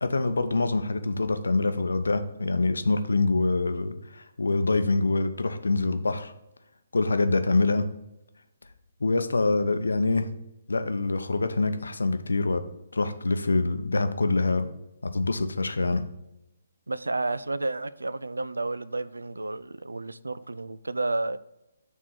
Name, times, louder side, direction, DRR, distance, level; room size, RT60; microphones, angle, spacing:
voice 1, 0.0-6.3 6.9-7.9 9.0-10.3 10.7-12.7 12.9-14.7 15.0-16.0, left 3 dB, 70° left, 9 dB, 0.6 m, -25 dB
voice 2, 16.9-21.4, right 2 dB, 75° right, 16 dB, 0.3 m, -31 dB
6.4 x 3.6 x 5.6 m, 0.91 s
figure-of-eight pair, 135°, 0 cm